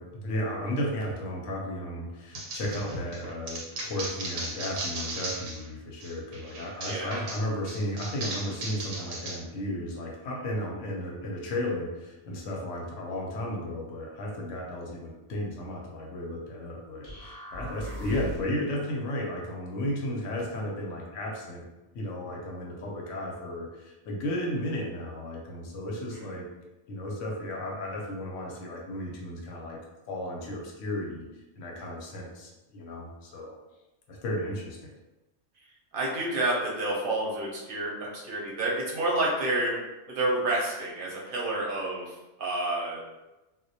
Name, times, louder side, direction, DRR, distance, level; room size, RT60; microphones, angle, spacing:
voice 1, 0.0-21.7 21.9-26.5 26.9-29.8 30.1-31.3 31.6-33.5 34.1-34.9, left 1 dB, 75° left, -1 dB, 0.9 m, -34 dB
sound 1, 2.3-5.7 6.0-9.4, right 2 dB, 85° right, 1.0 m, -36 dB
sound 2, 17.0-18.6, equal, 20° left, 0.7 m, -39 dB
voice 2, 17.8-18.2 26.1-26.4 35.9-39.7 40.1-43.0, right 2 dB, 55° right, -4 dB, 0.7 m, -29 dB
2.2 x 2.1 x 2.6 m, 1.0 s
omnidirectional pair, 1.3 m